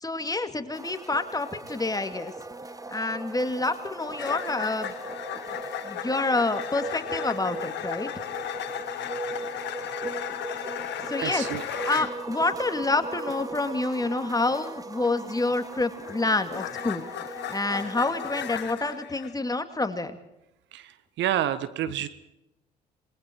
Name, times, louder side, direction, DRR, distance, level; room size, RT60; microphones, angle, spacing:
voice 1, 0.0-2.3 2.9-4.9 5.5-5.6 5.8-8.1 11.1-11.4 11.9-17.1 17.5-20.2, left 2 dB, 15° left, 8 dB, 2.4 m, -28 dB
sound 1, 0.7-18.7, right 2 dB, 15° right, 2.2 m, -39 dB
sound 2, 4.2-12.2 15.5-19.3, left 12 dB, 60° left, 1.4 m, -36 dB
voice 2, 11.2-11.6 20.7-22.1, right 11 dB, 60° right, 13 dB, 1.4 m, -29 dB
27.0 x 22.0 x 4.7 m, 0.87 s
hypercardioid pair, 55°, 21 cm